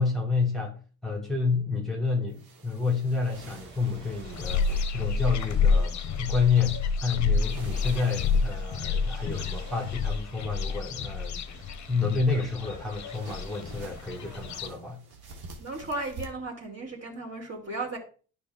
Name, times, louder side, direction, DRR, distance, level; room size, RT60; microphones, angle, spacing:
voice 1, 0.0-11.6 11.9-15.0, left 4 dB, ahead, 1.3 m, -29 dB
sound 1, 2.3-5.4 7.3-8.8 13.1-16.3, right 3 dB, 60° right, 1.5 m, -48 dB
Ocean / Boat Water vehicle, 3.3-14.6, right 2 dB, 80° right, 2.6 m, -50 dB
sound 2, 4.2-14.7, left 5 dB, 45° left, 0.7 m, -29 dB
voice 2, 15.6-18.0, right 2 dB, 35° right, 2.8 m, -35 dB
10.0 x 5.4 x 2.5 m
supercardioid pair, 60°, 41 cm